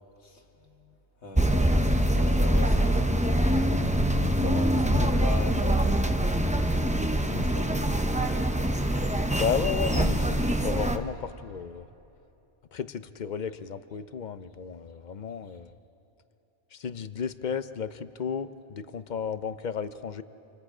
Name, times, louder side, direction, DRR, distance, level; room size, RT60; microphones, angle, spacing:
voice 1, 1.2-4.1 4.4-5.9 7.1-8.5, left 2 dB, 75° left, 2 dB, 2.2 m, -40 dB
sound 1, 1.3-11.0, right 1 dB, 10° right, 0.7 m, -24 dB
voice 2, 9.3-11.9 12.7-15.7 16.7-20.2, left 7 dB, 45° left, 12 dB, 0.7 m, -33 dB
28.0 x 27.0 x 5.0 m, 2.9 s
omnidirectional pair, 1.2 m